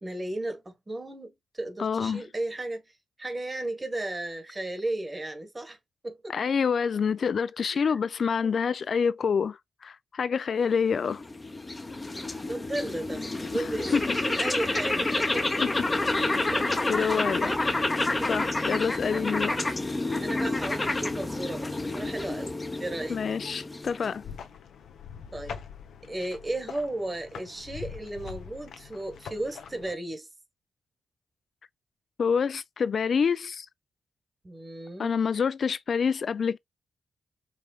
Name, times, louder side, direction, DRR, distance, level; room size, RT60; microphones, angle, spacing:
voice 1, 0.0-2.8 3.2-5.8 6.0-6.3 7.7-8.0 8.4-8.5 12.4-15.6 16.5-17.7 19.1-19.2 20.2-23.2 25.3-25.6 26.0-30.3 34.4-35.2, right 1 dB, 25° right, 1.2 m, -35 dB
voice 2, 1.8-2.2 6.3-9.6 9.8-11.2 13.9-14.2 15.6-15.7 16.4-17.5 18.3-19.6 23.1-24.2 32.2-33.7 35.0-36.6, left 6 dB, 55° left, 0.4 m, -27 dB
sound 1, 10.9-24.3, left 2 dB, 20° left, 0.7 m, -29 dB
sound 2, 23.8-29.9, left 7 dB, 85° left, 0.8 m, -43 dB
5.0 x 3.2 x 2.3 m
cardioid pair, 100°, 0 cm